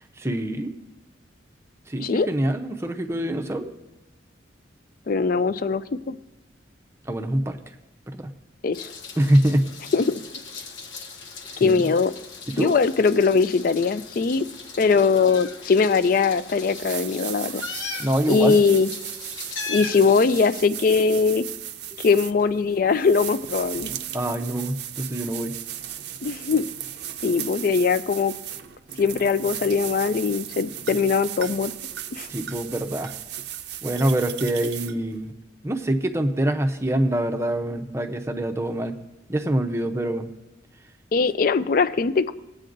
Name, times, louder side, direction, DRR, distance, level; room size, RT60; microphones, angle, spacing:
voice 1, 0.2-0.7 1.9-3.7 7.1-7.6 8.1-8.3 9.2-9.7 11.5-11.8 12.6-12.7 18.0-18.6 24.1-25.5 32.3-33.1 33.8-35.3 35.6-39.0 39.3-40.3, right 1 dB, 15° right, 5 dB, 0.6 m, -25 dB
voice 2, 5.1-6.2 8.6-8.9 9.9-10.2 11.6-12.1 12.6-14.5 14.8-17.6 18.3-18.9 19.7-21.5 22.0-23.9 26.2-26.6 27.2-28.3 29.0-31.7 32.1-32.3 41.1-42.3, left 5 dB, 50° left, 13 dB, 0.4 m, -21 dB
Meow, 8.7-20.5, left 4 dB, 85° left, 1.0 m, -38 dB
sound 1, 16.6-35.3, right 11 dB, 60° right, 0.5 m, -36 dB
19.5 x 8.4 x 2.6 m, 1.0 s
head